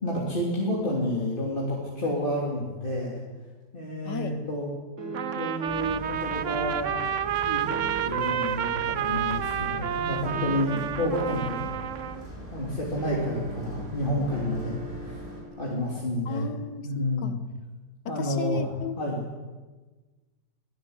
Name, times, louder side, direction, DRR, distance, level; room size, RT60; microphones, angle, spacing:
voice 1, 0.0-3.2 3.7-4.7 5.3-7.0 7.5-11.7 12.5-15.2 15.6-16.6 16.8-17.4 18.1-18.6 19.0-19.3, left 1 dB, 30° left, -4 dB, 3.3 m, -30 dB
voice 2, 4.0-4.4 10.7-11.0 16.3-17.4 18.0-19.0, left 7 dB, 70° left, 11 dB, 1.6 m, -35 dB
sound 1, 5.0-5.8 7.6-8.4 10.3-11.1 13.0-15.7, right 3 dB, 85° right, 3.4 m, -39 dB
Trumpet, 5.1-12.3, right 9 dB, 55° right, 1.0 m, -30 dB
sound 2, 5.6-15.4, right 1 dB, 20° right, 5.5 m, -41 dB
22.0 x 14.5 x 8.2 m, 1.3 s
omnidirectional pair, 1.9 m